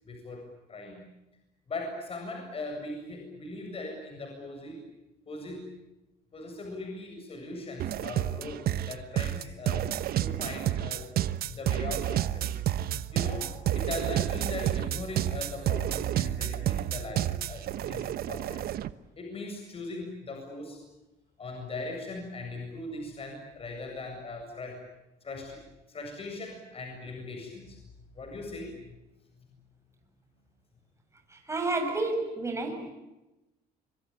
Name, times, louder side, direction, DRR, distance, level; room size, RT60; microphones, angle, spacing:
voice 1, 0.1-0.4 0.7-1.1 1.7-4.8 5.3-5.7 6.3-9.9 10.2-11.1 11.5-12.6 13.1-18.6 19.2-20.8 21.4-24.8 25.2-25.6 25.9-27.8 28.1-28.7, left 2 dB, 35° left, 2 dB, 7.8 m, -39 dB
sound 1, 7.8-18.9, right 12 dB, 65° right, 1.1 m, -30 dB
voice 2, 31.3-32.9, right 2 dB, 15° right, 3 dB, 7.1 m, -30 dB
25.5 x 25.0 x 8.9 m, 0.98 s
cardioid pair, 110°, 17 cm